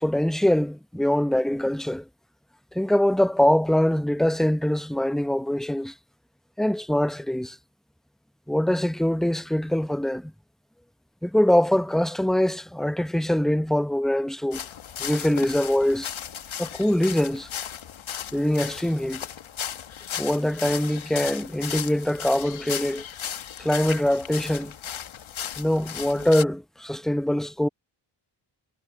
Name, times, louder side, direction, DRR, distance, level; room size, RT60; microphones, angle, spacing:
voice 1, 0.0-2.0 2.7-5.9 6.6-7.6 8.5-10.3 11.2-14.6 15.0-16.1 16.6-17.5 18.3-19.2 20.2-23.0 23.6-24.7 25.6-27.7, left 1 dB, ahead, 0.7 m, -23 dB
sound 1, 14.5-26.4, left 9 dB, 70° left, 1.2 m, -36 dB
cardioid pair, 75°, 49 cm